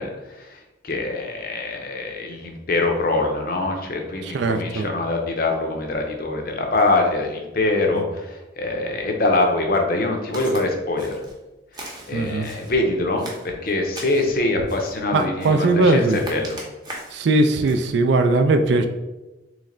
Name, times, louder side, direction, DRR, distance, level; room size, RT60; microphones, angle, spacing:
voice 1, 0.0-11.1 11.7-16.0 16.3-16.6, left 2 dB, 50° left, 2 dB, 0.6 m, -24 dB
voice 2, 4.2-4.9 7.9-8.0 12.1-12.5 15.1-16.2 17.1-18.9, right 2 dB, 60° right, 7 dB, 0.4 m, -19 dB
Walk footsteps, 10.3-10.6 11.0-11.4 11.7-12.7 13.2-14.3 14.7-15.0 15.4-15.7 16.1-17.2 17.6-17.9, right 1 dB, 20° right, 0.7 m, -39 dB
3.2 x 3.1 x 3.8 m, 1.1 s
head